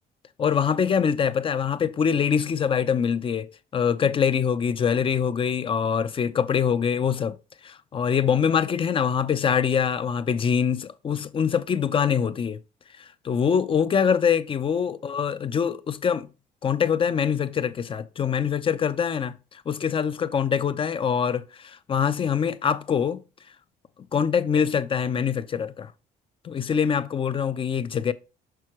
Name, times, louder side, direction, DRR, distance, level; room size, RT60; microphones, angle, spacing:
voice 1, 0.4-7.4 7.6-12.6 13.0-16.3 16.6-23.2 24.1-25.9 26.4-28.1, left 7 dB, 30° left, 0.5 m, -24 dB
6.2 x 5.6 x 3.1 m
cardioid pair, 110°, 17 cm